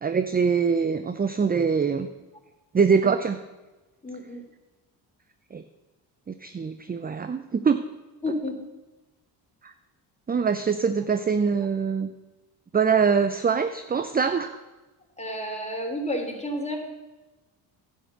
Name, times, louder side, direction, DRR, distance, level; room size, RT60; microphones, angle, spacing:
voice 1, 0.0-2.1 2.7-3.4 5.5-5.6 6.3-7.8 9.6-9.7 10.3-12.1 12.7-14.5, right 6 dB, 20° right, 10 dB, 0.5 m, -23 dB
voice 2, 4.0-4.4 8.2-8.6 15.2-16.8, left 1 dB, 15° left, 1 dB, 3.2 m, -30 dB
11.0 x 6.5 x 6.7 m, 1.1 s
supercardioid pair, 55°, 50 cm